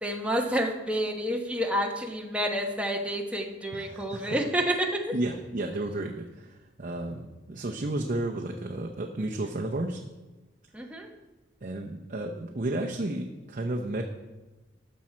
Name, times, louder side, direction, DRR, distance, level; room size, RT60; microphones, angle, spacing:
voice 1, 0.0-5.1 10.7-11.1, equal, 5° right, 2 dB, 1.0 m, -29 dB
voice 2, 3.7-4.4 5.1-10.0 11.6-14.0, right 1 dB, 45° right, 2 dB, 0.7 m, -32 dB
13.0 x 6.3 x 4.4 m, 1.1 s
head